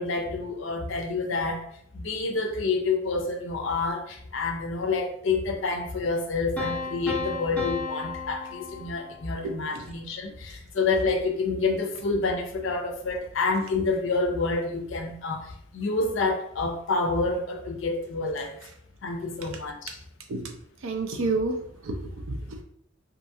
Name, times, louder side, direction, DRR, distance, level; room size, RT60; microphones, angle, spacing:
voice 1, 0.0-1.7 1.9-18.7 19.0-20.0, left 3 dB, 60° left, 4 dB, 0.5 m, -28 dB
Piano, 6.6-9.5, left 3 dB, 5° left, 0.6 m, -33 dB
voice 2, 9.4-9.8 20.3-20.5 20.8-21.6 21.8-22.6, right 3 dB, 70° right, 3 dB, 0.4 m, -30 dB
2.8 x 2.4 x 2.6 m, 0.68 s
head